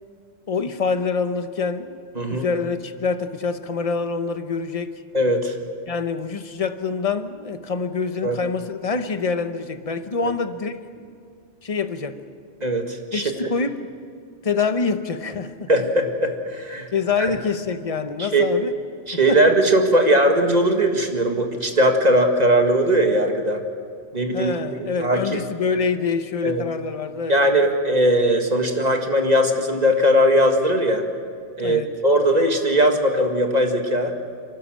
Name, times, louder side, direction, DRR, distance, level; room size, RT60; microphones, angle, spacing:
voice 1, 0.5-2.0 2.3-4.9 5.9-10.7 11.6-12.2 13.1-13.9 14.4-15.7 16.9-18.7 19.3-19.4 24.3-27.4 27.7-27.8 31.6-31.9, left 5 dB, 35° left, 9 dB, 0.9 m, -25 dB
voice 2, 5.1-5.6 8.2-8.4 10.2-10.3 12.6-13.5 15.7-16.9 18.3-18.5 19.1-23.6 24.1-24.5 25.0-25.4 26.4-26.6 27.3-31.0 31.6-34.3, right 1 dB, 35° right, 4 dB, 1.8 m, -19 dB
29.5 x 12.5 x 7.5 m, 2.2 s
omnidirectional pair, 1.2 m